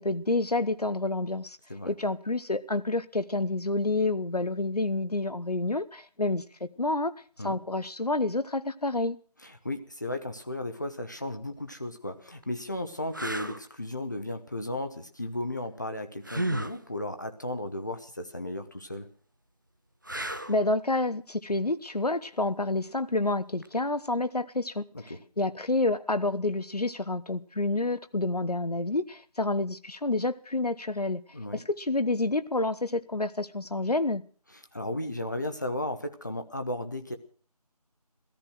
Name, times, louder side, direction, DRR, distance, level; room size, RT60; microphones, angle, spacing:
voice 1, 0.0-1.6 1.8-7.1 7.4-9.2 20.5-31.2 31.5-34.2, left 2 dB, 70° left, 1.0 m, -29 dB
voice 2, 9.4-19.1 24.9-25.2 31.3-31.6 34.5-37.2, left 1 dB, 30° left, 0.9 m, -35 dB
sound 1, 11.5-11.7 12.4-12.5 13.1-13.6 16.2-16.8 20.0-20.7 23.6-23.8, right 1 dB, 30° right, 0.6 m, -33 dB
15.5 x 14.0 x 6.3 m
figure-of-eight pair, 165°, 20 cm